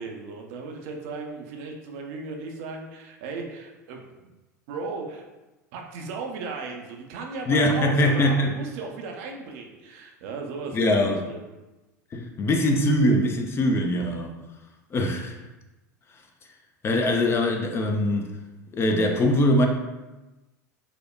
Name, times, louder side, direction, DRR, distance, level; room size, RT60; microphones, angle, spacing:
voice 1, 0.0-4.3 4.7-5.2 5.7-11.4, right 4 dB, 55° right, 1 dB, 0.5 m, -36 dB
voice 2, 7.5-8.5 10.7-11.2 12.1-14.4 14.9-15.4 16.8-18.3 18.7-19.7, left 1 dB, 25° left, 4 dB, 0.4 m, -22 dB
4.9 x 2.1 x 2.3 m, 1.1 s
figure-of-eight pair, 80°, 10 cm